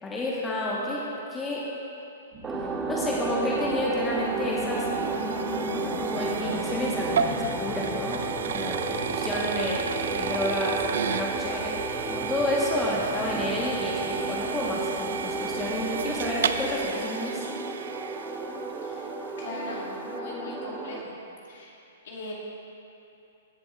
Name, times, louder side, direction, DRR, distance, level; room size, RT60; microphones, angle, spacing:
voice 1, 0.0-1.6 2.9-4.9 6.0-8.8 9.1-10.8 11.1-11.7 12.1-17.4, left 1 dB, 15° left, -5 dB, 1.2 m, -30 dB
sound 1, 2.3-16.7, right 1 dB, 45° right, 2.1 m, -40 dB
sound 2, 2.4-21.0, right 3 dB, 15° right, 0.6 m, -33 dB
sound 3, 3.7-18.9, right 6 dB, 65° right, 0.4 m, -34 dB
voice 2, 19.4-21.2 21.4-21.8 22.0-22.3, left 2 dB, 60° left, -6 dB, 2.1 m, -39 dB
15.0 x 7.5 x 2.4 m, 2.8 s
figure-of-eight pair, 115°, 0 cm